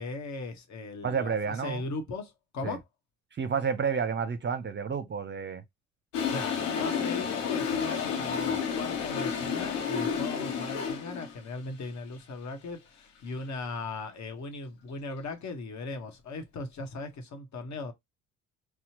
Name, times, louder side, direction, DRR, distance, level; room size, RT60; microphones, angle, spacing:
voice 1, 0.0-1.3 1.6-2.8 6.3-17.9, left 3 dB, 45° left, 1.3 m, -38 dB
voice 2, 1.0-1.8 2.6-2.8 3.4-5.6, right 6 dB, 30° right, 0.7 m, -30 dB
Toilet flush, 6.1-11.4, left 6 dB, 75° left, 1.0 m, -31 dB
4.2 x 2.3 x 2.8 m
hypercardioid pair, 55°, 39 cm